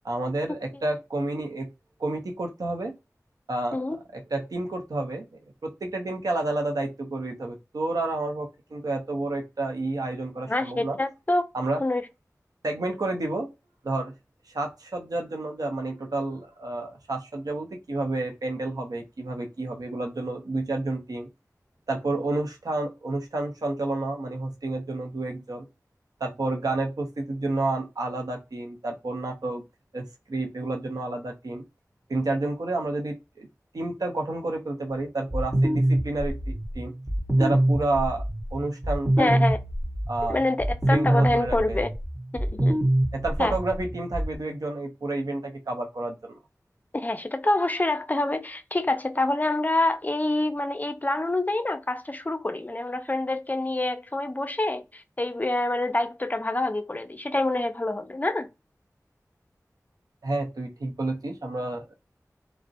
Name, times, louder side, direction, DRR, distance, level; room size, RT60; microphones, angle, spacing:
voice 1, 0.0-1.7 2.0-2.9 3.5-3.8 4.1-5.3 5.6-11.0 11.5-11.8 12.6-13.5 13.8-14.1 14.5-21.3 21.9-25.6 26.2-29.6 29.9-31.6 32.1-33.5 33.7-36.9 37.4-38.3 38.5-39.4 40.1-40.4 40.9-41.8 43.1-46.4 60.2-61.9, right 2 dB, 85° right, 0.6 m, -30 dB
voice 2, 10.5-11.5 11.8-12.0 39.2-39.6 40.3-41.9 42.3-42.8 43.4-43.5 46.9-58.5, left 2 dB, 30° left, 0.4 m, -26 dB
sound 1, 35.3-44.4, right 1 dB, 30° right, 0.7 m, -25 dB
2.3 x 2.0 x 2.6 m
wide cardioid pair, 40°, 6 cm